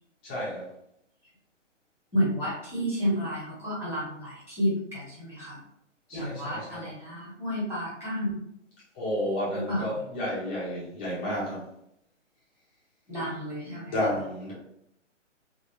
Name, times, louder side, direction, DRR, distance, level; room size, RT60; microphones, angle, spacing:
voice 1, 0.2-0.7 6.1-6.9 8.9-11.6 13.9-14.5, left 1 dB, 10° left, -8 dB, 0.4 m, -31 dB
voice 2, 2.1-5.6 6.1-8.4 9.5-9.9 13.1-14.1, equal, 5° right, -9 dB, 1.2 m, -31 dB
3.1 x 2.3 x 2.7 m, 0.76 s
hypercardioid pair, 135°, 38 cm